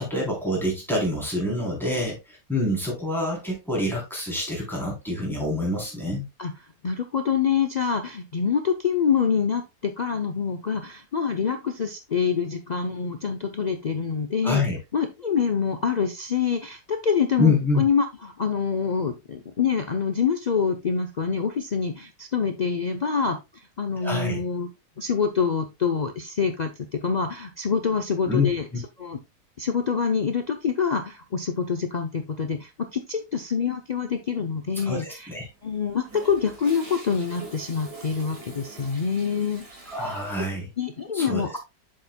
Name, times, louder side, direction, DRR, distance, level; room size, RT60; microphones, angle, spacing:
voice 1, 0.0-6.3 14.4-14.8 17.4-17.8 24.0-24.4 28.3-28.5 34.8-35.5 39.9-40.7 41.1-41.4, left 2 dB, ahead, -3 dB, 3.5 m, -26 dB
voice 2, 6.8-14.6 14.9-23.4 23.8-24.7 25.0-28.7 29.0-29.2 29.6-35.3 35.6-39.7 40.1-40.2 40.8-41.6, left 6 dB, 65° left, 5 dB, 0.4 m, -26 dB
Toilet flush, 35.2-40.5, right 2 dB, 85° right, 3.0 m, -44 dB
7.8 x 7.1 x 2.2 m, 0.23 s
omnidirectional pair, 1.7 m